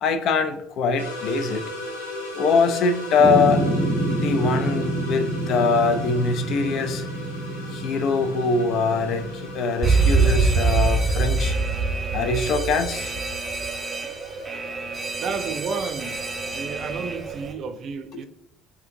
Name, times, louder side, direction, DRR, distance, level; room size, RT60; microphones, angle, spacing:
voice 1, 0.0-1.7 2.4-3.7 4.1-7.0 7.7-11.5 12.1-13.1, left 4 dB, 55° left, 0.4 m, -23 dB
sound 1, 1.0-17.3, left 1 dB, 85° left, 0.8 m, -39 dB
sound 2, 3.2-9.7, right 1 dB, 5° right, 1.0 m, -27 dB
Alarm, 9.8-17.5, right 4 dB, 25° right, 0.7 m, -24 dB
voice 2, 15.2-16.2 16.5-18.3, right 5 dB, 50° right, 0.4 m, -32 dB
5.0 x 2.7 x 2.7 m
figure-of-eight pair, 55°, 0 cm